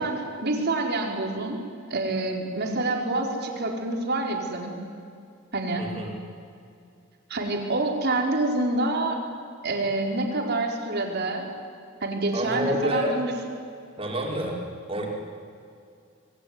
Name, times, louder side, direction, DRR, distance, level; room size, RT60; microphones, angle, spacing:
voice 1, 0.0-1.6 1.9-4.8 5.5-5.9 7.3-9.2 9.6-11.5 12.0-13.3, right 2 dB, 55° right, 2 dB, 4.5 m, -27 dB
voice 2, 5.8-6.2 12.3-13.2 14.0-14.6 14.9-15.1, equal, 30° right, -1 dB, 5.3 m, -28 dB
27.0 x 22.0 x 9.7 m, 2.4 s
head